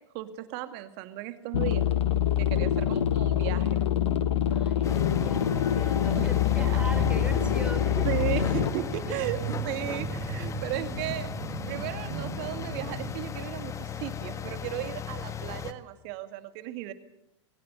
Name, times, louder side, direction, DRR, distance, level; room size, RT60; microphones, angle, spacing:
voice 1, 0.1-1.9 2.4-3.8 6.1-6.8 8.0-11.3 11.7-16.9, right 14 dB, 50° right, 9 dB, 2.2 m, -35 dB
sound 1, 1.5-8.7, left 10 dB, 70° left, 1.3 m, -25 dB
voice 2, 4.5-8.2 9.1-9.2, right 2 dB, 5° right, 6 dB, 4.9 m, -40 dB
sound 2, 4.8-15.7, left 7 dB, 20° left, 1.3 m, -36 dB
sound 3, 6.1-13.1, right 7 dB, 25° right, 5.2 m, -37 dB
22.0 x 18.5 x 8.1 m, 0.82 s
hypercardioid pair, 100°, 15 cm